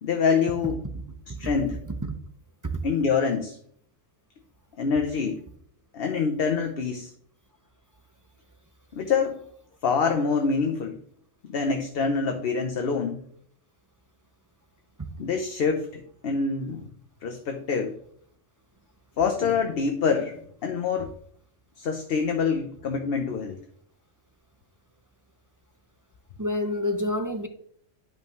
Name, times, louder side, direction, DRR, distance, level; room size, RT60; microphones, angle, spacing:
voice 1, 0.0-0.8 1.4-1.8 2.8-3.6 4.8-5.4 5.9-7.1 8.9-9.4 9.8-11.0 11.4-13.2 15.2-16.9 17.2-17.9 19.2-21.1 21.8-23.6, left 5 dB, 55° left, 4 dB, 0.9 m, -26 dB
voice 2, 26.4-27.5, left 1 dB, 20° right, 5 dB, 0.5 m, -28 dB
10.5 x 5.4 x 3.1 m, 0.62 s
omnidirectional pair, 1.3 m